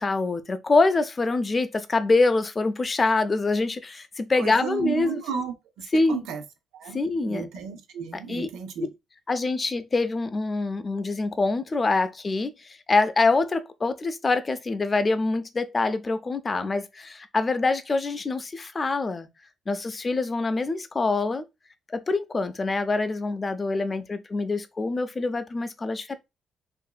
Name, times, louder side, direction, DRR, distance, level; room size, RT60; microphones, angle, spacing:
voice 1, 0.0-5.4 5.9-6.2 6.9-7.5 8.3-8.5 9.3-12.5 12.9-19.3 19.7-21.5 21.9-26.2, left 3 dB, 30° left, 0.4 m, -25 dB
voice 2, 4.4-6.4 6.7-8.9, right 7 dB, 85° right, 0.5 m, -34 dB
2.8 x 2.5 x 2.2 m
cardioid pair, 90°, 0 cm